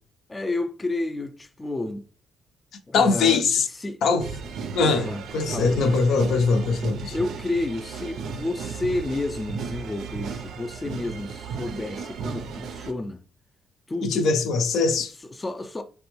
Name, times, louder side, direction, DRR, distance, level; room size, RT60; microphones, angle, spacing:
voice 1, 0.3-2.1 2.9-4.0 4.8-5.2 5.5-6.0 7.1-13.2 13.9-14.3 15.3-15.8, left 2 dB, 20° left, 0.3 m, -31 dB
voice 2, 2.9-3.7 4.0-4.3 4.7-5.1 5.3-7.1 14.0-15.1, left 4 dB, 75° left, 0.5 m, -21 dB
sound 1, 4.2-12.9, right 5 dB, 75° right, 0.4 m, -35 dB
3.2 x 2.2 x 3.0 m
cardioid pair, 90°, 0 cm